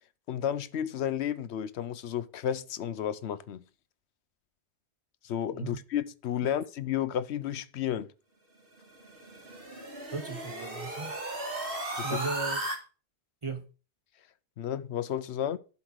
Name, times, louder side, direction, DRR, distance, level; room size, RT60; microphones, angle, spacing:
voice 1, 0.3-3.6 5.2-8.1 11.9-12.2 14.6-15.6, left 10 dB, 75° left, 0.9 m, -32 dB
sound 1, 8.8-12.8, right 2 dB, 55° right, 2.0 m, -36 dB
voice 2, 10.1-11.2 12.0-12.6 13.4-13.7, right 3 dB, 35° right, 0.6 m, -36 dB
11.5 x 4.1 x 6.1 m
omnidirectional pair, 1.1 m